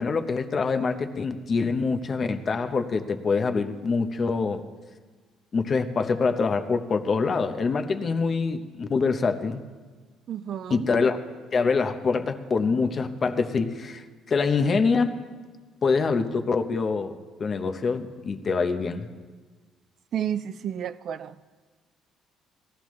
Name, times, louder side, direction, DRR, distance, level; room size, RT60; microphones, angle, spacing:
voice 1, 0.0-4.6 5.5-9.6 10.7-11.2 11.5-15.2 15.8-19.1, left 4 dB, 35° left, 0.8 m, -25 dB
voice 2, 10.3-10.9 20.1-21.4, right 9 dB, 55° right, 0.4 m, -31 dB
19.0 x 13.5 x 3.2 m
cardioid pair, 120°, 0 cm